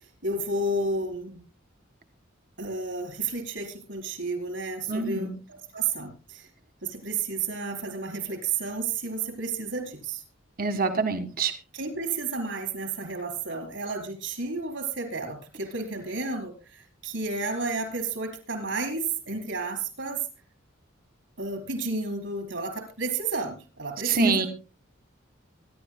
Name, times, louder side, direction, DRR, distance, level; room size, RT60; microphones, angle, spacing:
voice 1, 0.2-1.4 2.6-5.3 5.7-6.5 6.8-10.2 11.7-20.2 21.4-24.5, right 3 dB, 75° right, 3 dB, 4.3 m, -31 dB
voice 2, 4.9-5.3 10.6-11.5 24.0-24.5, right 3 dB, 45° right, 7 dB, 1.7 m, -25 dB
24.5 x 11.5 x 2.2 m, 0.32 s
head